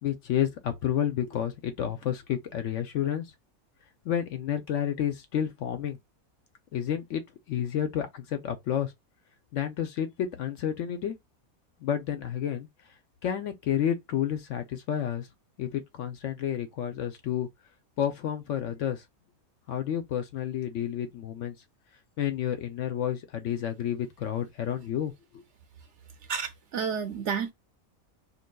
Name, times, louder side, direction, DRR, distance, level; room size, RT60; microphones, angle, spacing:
voice 1, 0.0-3.3 4.0-6.0 6.7-8.9 9.5-11.1 11.8-12.7 13.2-15.3 15.6-17.5 18.0-19.0 19.7-21.5 22.2-25.1, left 10 dB, 65° left, 0.8 m, -30 dB
voice 2, 26.3-27.5, right 6 dB, 65° right, 0.8 m, -31 dB
5.2 x 2.8 x 2.2 m
omnidirectional pair, 1.5 m